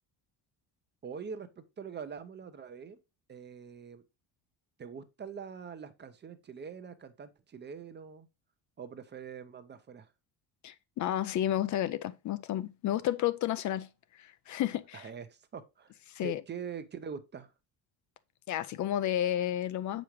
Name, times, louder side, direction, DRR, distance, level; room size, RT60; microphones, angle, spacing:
voice 1, 1.0-3.0 3.3-4.0 4.8-8.3 8.8-10.1 14.9-15.9 16.2-17.5, right 6 dB, 30° right, 0.7 m, -44 dB
voice 2, 10.6-15.1 16.1-16.4 18.5-20.0, left 12 dB, 50° left, 0.5 m, -32 dB
6.9 x 5.1 x 3.0 m
cardioid pair, 125°, 37 cm